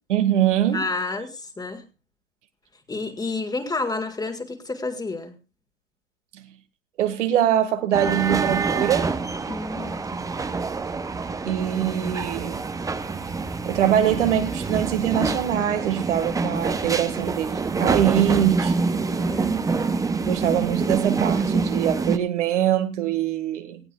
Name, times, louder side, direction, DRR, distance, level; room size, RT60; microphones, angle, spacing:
voice 1, 0.1-0.8 7.0-9.1 11.5-12.6 13.7-18.7 20.2-23.8, right 10 dB, 70° right, 2.0 m, -23 dB
voice 2, 0.7-1.8 2.9-5.3 9.5-10.2 19.1-19.7, left 3 dB, 10° left, 1.9 m, -30 dB
sound 1, 7.9-22.2, right 4 dB, 10° right, 0.8 m, -26 dB
18.5 x 15.5 x 2.4 m
hypercardioid pair, 110°, 37 cm